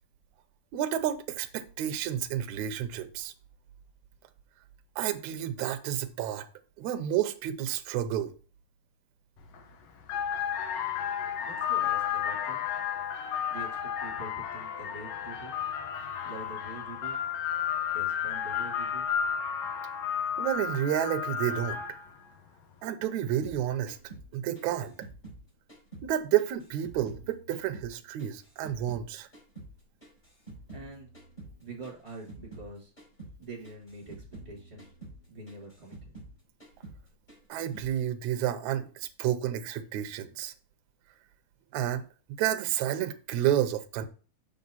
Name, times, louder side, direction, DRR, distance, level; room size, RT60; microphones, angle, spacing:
voice 1, 0.7-3.3 5.0-6.5 6.8-8.3 20.4-21.8 22.8-24.0 24.3-24.9 26.0-29.3 37.5-40.5 41.7-42.0 42.4-44.1, right 11 dB, 75° right, 1.8 m, -30 dB
sound 1, 9.4-9.6 10.0-22.1, left 8 dB, 75° left, 1.5 m, -32 dB
voice 2, 11.4-12.7 13.5-15.5 16.2-17.2 17.9-19.1 30.7-31.1 31.6-32.9 33.4-34.9 35.3-36.1, right 3 dB, 10° right, 3.3 m, -45 dB
sound 2, 23.4-26.1 26.4-29.1 29.3-32.7 33.0-33.4 33.6-36.3 36.6-37.0 37.3-37.9, right 2 dB, 10° left, 4.1 m, -48 dB
6.9 x 6.4 x 4.1 m
omnidirectional pair, 4.1 m